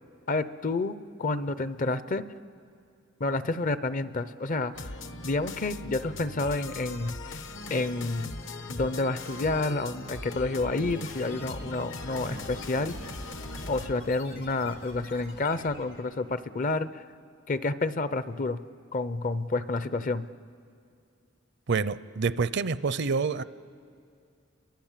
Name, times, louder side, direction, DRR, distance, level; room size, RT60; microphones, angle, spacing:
voice 1, 0.3-2.2 3.2-5.0 5.2-7.4 7.7-8.4 8.7-12.9 13.7-17.0 17.5-18.6 18.9-20.3, left 3 dB, 40° left, 14 dB, 0.6 m, -29 dB
sound 1, 4.7-13.9, left 2 dB, 70° left, 1.2 m, -40 dB
sound 2, 10.9-16.1, left 2 dB, 85° left, 4.2 m, -47 dB
voice 2, 21.7-23.4, right 4 dB, 60° right, 16 dB, 0.6 m, -27 dB
30.0 x 23.0 x 7.4 m, 2.3 s
head